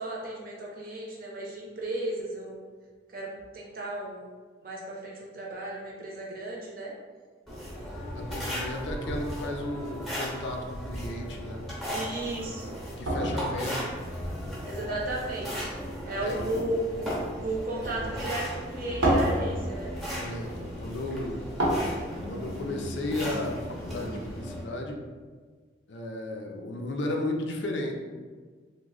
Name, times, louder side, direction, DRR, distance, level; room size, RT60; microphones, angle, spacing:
voice 1, 0.0-2.6 3.1-4.3 4.6-6.9 11.9-12.8 14.6-17.1 17.4-19.9, right 1 dB, 50° right, -3 dB, 0.6 m, -34 dB
sound 1, 7.5-24.6, equal, ahead, 0.7 m, -36 dB
voice 2, 8.2-11.7 13.0-14.6 16.1-16.5 20.2-21.4 22.2-25.0 25.9-27.9, left 1 dB, 75° left, 2 dB, 0.4 m, -34 dB
sound 2, 11.4-24.3, right 1 dB, 90° right, 0.8 m, -34 dB
3.0 x 2.1 x 3.7 m, 1.5 s
head